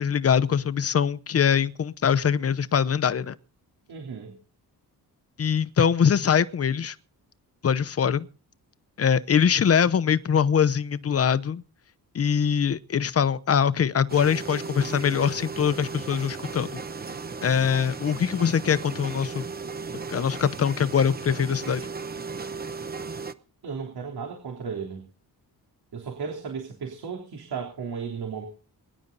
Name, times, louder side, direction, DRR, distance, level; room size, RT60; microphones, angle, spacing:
voice 1, 0.0-3.3 5.4-6.9 7.6-8.3 9.0-11.6 12.1-16.8 17.4-19.4 20.1-21.8, left 7 dB, 40° left, 0.8 m, -23 dB
voice 2, 3.9-4.3 23.6-25.0 25.9-28.5, right 6 dB, 80° right, 3.4 m, -34 dB
sound 1, 14.1-23.3, right 4 dB, 25° right, 0.9 m, -36 dB
23.5 x 11.5 x 4.0 m
wide cardioid pair, 170°, 37 cm